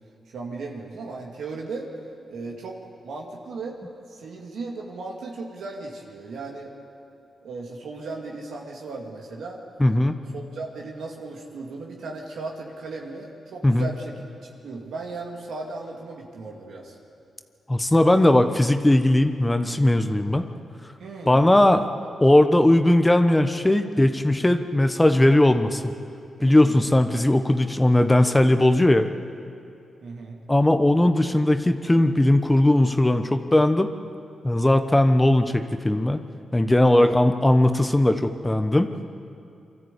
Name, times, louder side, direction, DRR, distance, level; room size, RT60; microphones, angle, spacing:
voice 1, 0.3-1.9 2.3-2.8 3.0-3.8 4.1-6.7 7.4-9.6 10.3-14.1 14.4-17.0 21.0-21.7 26.4-27.0 30.0-30.4 36.9-37.2, right 3 dB, 80° right, -1 dB, 2.3 m, -36 dB
voice 2, 9.8-10.2 13.6-13.9 17.7-20.4 21.3-21.8 22.2-25.9 26.4-29.1 30.5-33.9 34.4-36.2 36.5-38.9, left 1 dB, 15° left, 8 dB, 1.1 m, -18 dB
24.0 x 13.5 x 8.4 m, 2.6 s
cardioid pair, 75°, 0 cm